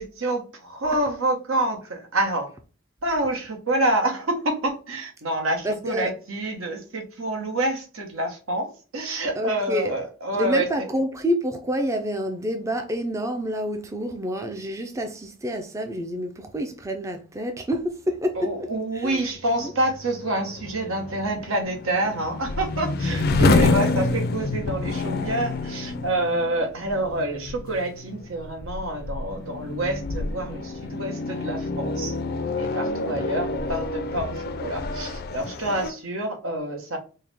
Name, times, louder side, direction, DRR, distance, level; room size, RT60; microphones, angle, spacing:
voice 1, 0.0-2.5 3.0-10.9 18.4-32.1 32.6-37.0, right 1 dB, 85° right, 1.0 m, -27 dB
voice 2, 5.6-6.1 9.4-9.9 10.4-18.7 18.9-19.2 19.6-19.7 23.3-23.8, equal, 15° right, 0.4 m, -28 dB
sound 1, 18.9-35.9, left 3 dB, 50° left, 0.4 m, -28 dB
4.5 x 2.2 x 3.4 m
head